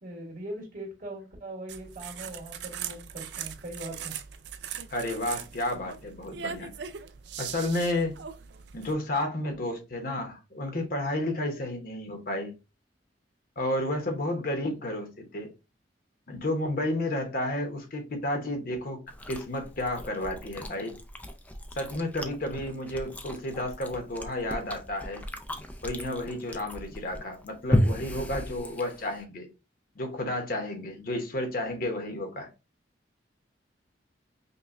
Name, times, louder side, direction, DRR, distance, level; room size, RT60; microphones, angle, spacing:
voice 1, 0.0-4.1, right 1 dB, 50° right, 1.8 m, -40 dB
sound 1, 1.7-8.9, right 8 dB, 65° right, 0.4 m, -40 dB
voice 2, 4.9-6.7 7.4-8.2 8.7-12.5 13.6-15.5 16.3-19.0 19.3-21.0 21.8-25.2 25.8-29.5 30.0-32.5, left 1 dB, 50° left, 0.9 m, -31 dB
Chewing mastication, 19.1-29.2, equal, 10° left, 0.4 m, -34 dB
5.4 x 2.3 x 2.5 m
head